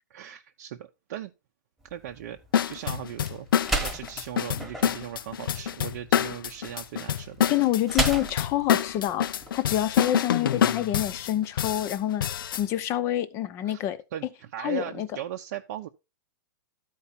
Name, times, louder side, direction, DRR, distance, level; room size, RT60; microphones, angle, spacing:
voice 1, 0.1-1.3 1.9-2.4 2.7-3.5 3.8-7.5 13.6-13.8 14.1-15.9, right 11 dB, 50° right, 0.7 m, -38 dB
sound 1, 1.8-10.0, right 2 dB, ahead, 1.1 m, -35 dB
sound 2, 2.5-12.6, left 9 dB, 90° left, 0.5 m, -27 dB
voice 2, 7.5-14.0 14.6-15.1, left 12 dB, 25° left, 0.7 m, -27 dB
12.5 x 4.6 x 4.2 m
hypercardioid pair, 165°, 11 cm